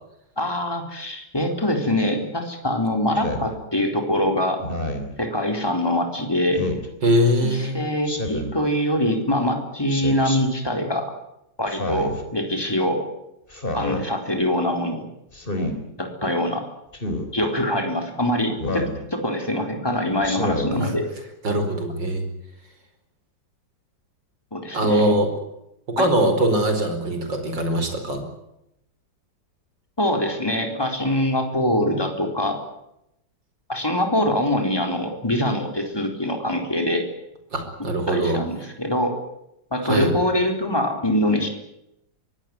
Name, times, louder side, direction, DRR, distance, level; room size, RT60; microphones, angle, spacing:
voice 1, 0.4-4.6 5.2-6.6 7.4-11.2 11.6-13.0 13.7-15.1 16.0-16.6 17.3-21.1 24.5-25.2 26.0-26.1 30.0-32.6 33.7-37.0 38.1-39.1 39.7-41.5, left 1 dB, 10° left, 4 dB, 4.1 m, -24 dB
Speech synthesizer, 3.2-3.5 4.6-5.1 6.5-6.9 8.0-8.6 9.9-10.4 11.7-12.2 13.5-14.0 15.3-15.7 16.9-17.3 18.6-19.0 20.2-20.7, left 1 dB, 25° left, 3.7 m, -28 dB
voice 2, 7.0-7.8 20.8-20.9 21.4-22.3 24.7-25.3 25.9-28.3 37.5-38.4 39.8-40.1, right 1 dB, 70° right, 7 dB, 5.3 m, -22 dB
23.5 x 18.5 x 9.7 m, 0.82 s
omnidirectional pair, 2.1 m